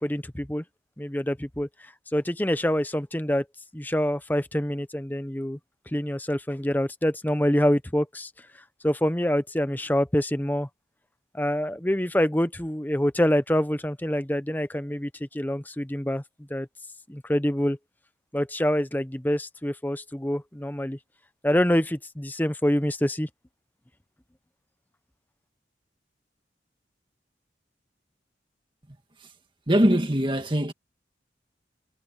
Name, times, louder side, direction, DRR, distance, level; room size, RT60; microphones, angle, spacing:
voice 1, 0.0-0.6 1.0-1.7 2.1-3.4 3.7-5.6 5.9-8.3 8.8-10.7 11.3-16.2 16.5-16.7 17.1-17.8 18.3-21.0 21.4-23.3, equal, 10° left, 0.8 m, -26 dB
voice 2, 29.7-30.7, equal, 25° right, 1.9 m, -21 dB
head